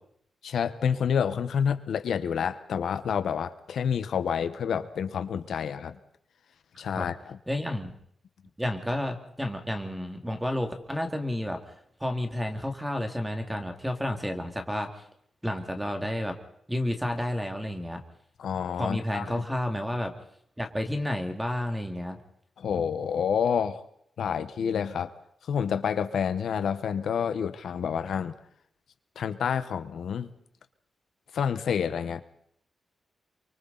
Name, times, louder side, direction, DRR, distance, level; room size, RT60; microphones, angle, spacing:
voice 1, 0.4-5.9 6.8-7.4 18.4-19.4 22.6-23.8 24.2-25.1 25.4-28.3 29.2-30.3 31.3-32.2, left 7 dB, 80° left, 10 dB, 1.1 m, -28 dB
voice 2, 7.5-7.9 8.6-11.8 12.0-14.9 15.4-16.4 16.7-18.0 18.8-20.2 20.6-22.2, left 1 dB, 5° right, 5 dB, 2.3 m, -31 dB
29.0 x 24.0 x 4.1 m, 0.69 s
wide cardioid pair, 160°, 0 cm